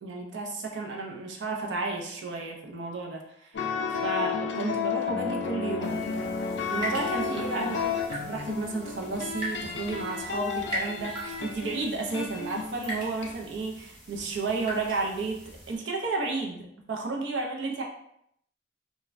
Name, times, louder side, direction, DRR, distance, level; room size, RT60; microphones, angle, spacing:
voice 1, 0.0-3.7 4.0-6.0 6.7-17.8, right 3 dB, 75° right, 0 dB, 0.5 m, -32 dB
sound 1, 3.5-13.3, left 5 dB, 70° left, 0.4 m, -32 dB
sound 2, 5.8-15.8, equal, 25° right, 0.7 m, -41 dB
2.4 x 2.1 x 3.1 m, 0.73 s
head